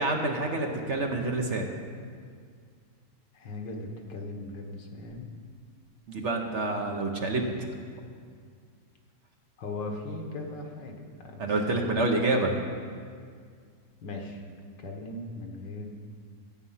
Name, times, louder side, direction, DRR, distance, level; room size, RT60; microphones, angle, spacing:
voice 1, 0.0-1.6 6.1-7.7 11.4-12.6, right 2 dB, 45° right, 2 dB, 1.1 m, -27 dB
voice 2, 3.3-5.3 6.9-7.2 9.6-12.1 14.0-14.4 14.8-15.9, left 2 dB, 85° left, 2 dB, 2.0 m, -39 dB
13.5 x 8.7 x 5.6 m, 2.1 s
omnidirectional pair, 1.9 m